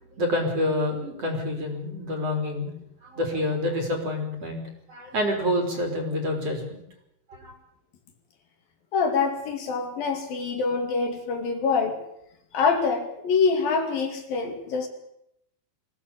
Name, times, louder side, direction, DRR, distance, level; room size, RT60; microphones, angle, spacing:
voice 1, 0.1-2.7 3.0-4.6 4.9-6.8 7.3-7.6, left 1 dB, 40° right, 3 dB, 4.7 m, -27 dB
voice 2, 8.9-12.0 12.5-14.9, left 5 dB, 65° left, 5 dB, 4.1 m, -25 dB
23.0 x 16.5 x 8.6 m, 0.79 s
omnidirectional pair, 4.5 m